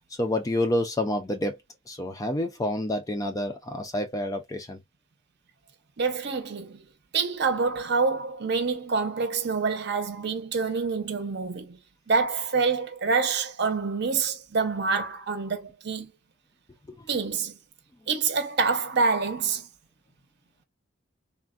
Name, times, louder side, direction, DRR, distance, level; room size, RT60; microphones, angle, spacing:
voice 1, 0.2-1.6 1.9-4.8 16.9-17.1, left 1 dB, 15° left, 0.4 m, -28 dB
voice 2, 6.0-6.8 7.1-11.8 12.1-16.1 17.1-17.6 18.1-19.7, right 4 dB, 55° right, 0.6 m, -26 dB
3.3 x 2.1 x 2.3 m
head